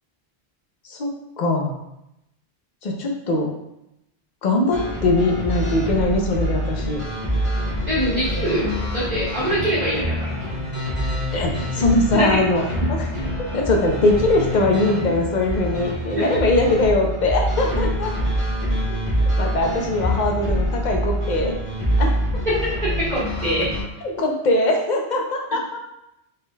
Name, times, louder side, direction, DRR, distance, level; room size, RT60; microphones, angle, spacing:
voice 1, 1.4-1.8 2.8-3.5 4.4-7.0 11.3-13.0 13.5-18.1 19.4-21.5 22.0-22.1 24.0-25.8, left 2 dB, 50° left, 1 dB, 0.8 m, -21 dB
sound 1, 4.7-23.8, equal, 30° left, 1.7 m, -25 dB
voice 2, 7.9-10.3 12.1-12.4 12.8-13.0 16.1-16.4 23.1-23.8, equal, 40° right, -11 dB, 1.6 m, -24 dB
5.4 x 3.6 x 2.3 m, 0.86 s
omnidirectional pair, 1.1 m